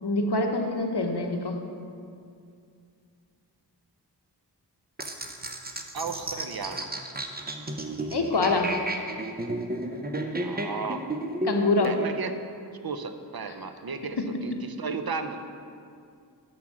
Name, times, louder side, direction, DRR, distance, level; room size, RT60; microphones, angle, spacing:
voice 1, 0.0-1.6 8.1-8.8 11.4-12.0 13.5-13.6 14.2-14.4, left 2 dB, 75° left, 4 dB, 0.9 m, -25 dB
sound 1, 5.0-11.9, right 1 dB, 25° right, 0.7 m, -33 dB
voice 2, 5.9-6.9 10.3-11.0 11.8-12.3 12.8-15.4, right 5 dB, 60° right, 8 dB, 0.6 m, -34 dB
7.2 x 6.3 x 6.2 m, 2.4 s
wide cardioid pair, 45°, 41 cm